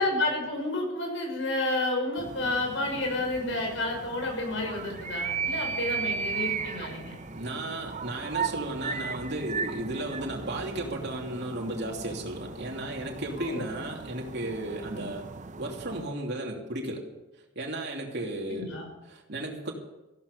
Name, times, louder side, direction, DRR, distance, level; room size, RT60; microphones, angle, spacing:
voice 1, 0.0-7.2 13.4-13.7 15.0-15.1 18.5-18.9, left 2 dB, 80° left, 2 dB, 6.2 m, -30 dB
sound 1, 2.2-16.1, right 5 dB, 40° right, 0.7 m, -36 dB
voice 2, 7.3-15.2 15.6-17.0 17.5-18.7 19.0-19.7, right 1 dB, 60° right, 0 dB, 3.0 m, -34 dB
15.5 x 12.0 x 6.8 m, 0.99 s
head